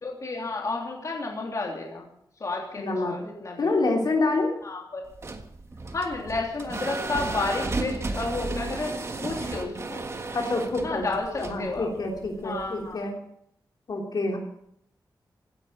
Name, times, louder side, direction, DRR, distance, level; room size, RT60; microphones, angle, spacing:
voice 1, 0.0-2.1 2.4-3.7 4.6-5.0 5.9-8.9 9.2-10.0 10.8-11.9 12.4-13.1, left 3 dB, 45° left, 0 dB, 3.2 m, -31 dB
voice 2, 2.8-3.1 3.6-4.5 10.3-11.1 11.4-13.2 13.9-14.4, left 2 dB, 65° left, 1 dB, 3.3 m, -27 dB
sound 1, 5.1-13.0, right 2 dB, 35° right, 1.5 m, -34 dB
17.0 x 9.9 x 7.9 m, 0.71 s
wide cardioid pair, 145°, 8 cm